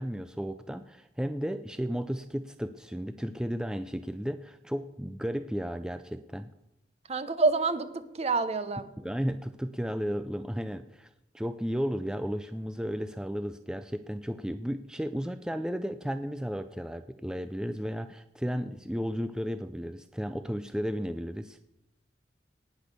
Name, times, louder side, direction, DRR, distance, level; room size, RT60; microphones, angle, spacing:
voice 1, 0.0-6.5 9.0-21.6, equal, 5° right, 10 dB, 0.4 m, -34 dB
voice 2, 7.1-8.9, right 3 dB, 35° right, 12 dB, 0.9 m, -27 dB
18.5 x 6.2 x 6.8 m, 0.87 s
head